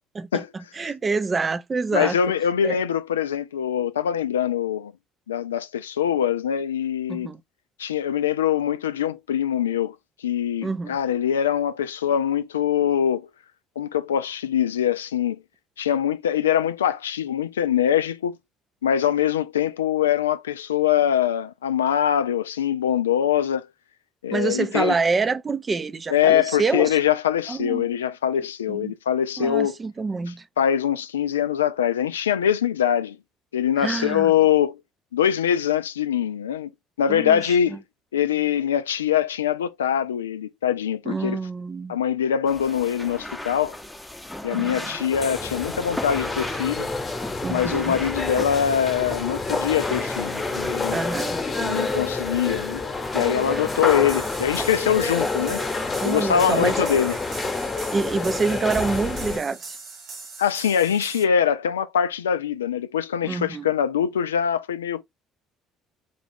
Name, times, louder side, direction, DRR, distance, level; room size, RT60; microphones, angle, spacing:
voice 1, 0.1-2.2 2.6-2.8 7.1-7.4 10.6-11.0 24.3-26.9 27.5-27.9 28.7-28.9 29.4-30.4 33.8-34.3 37.1-37.8 41.1-42.0 44.6-45.0 47.4-48.0 50.9-51.4 53.5-53.6 56.0-56.8 57.9-59.8 63.3-63.7, right 4 dB, 30° right, 0.5 m, -26 dB
voice 2, 1.9-4.9 5.3-7.3 7.8-13.3 13.8-15.4 15.8-18.4 18.8-23.7 24.2-25.0 26.1-29.7 30.6-33.2 33.5-34.8 35.1-36.7 37.0-37.8 38.1-41.4 41.9-43.8 44.4-46.9 47.5-51.0 51.6-52.8 53.1-55.6 56.0-57.2 60.4-65.0, left 9 dB, 80° left, 0.3 m, -23 dB
sound 1, 42.5-58.2, left 1 dB, 10° left, 0.7 m, -37 dB
sound 2, 45.1-59.4, left 3 dB, 30° left, 1.0 m, -28 dB
sound 3, 53.9-61.2, right 4 dB, 50° right, 1.2 m, -40 dB
3.9 x 2.4 x 3.4 m
figure-of-eight pair, 50°, 0 cm